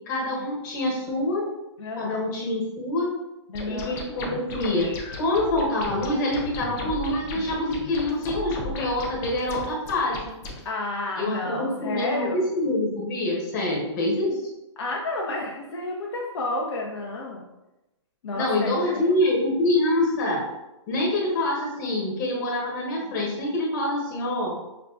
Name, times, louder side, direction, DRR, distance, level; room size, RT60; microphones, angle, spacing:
voice 1, 0.1-1.4 2.0-3.1 3.7-4.9 5.2-10.2 11.2-14.4 18.3-20.4 20.9-24.6, left 1 dB, 35° left, -3 dB, 1.2 m, -26 dB
voice 2, 1.8-2.2 3.5-4.0 6.8-7.0 10.6-12.4 14.8-17.5 18.2-19.2, left 2 dB, 70° left, -2 dB, 0.7 m, -31 dB
sound 1, 3.6-10.6, left 2 dB, 20° left, 0.4 m, -36 dB
5.7 x 2.3 x 2.4 m, 0.98 s
hypercardioid pair, 155°, 15 cm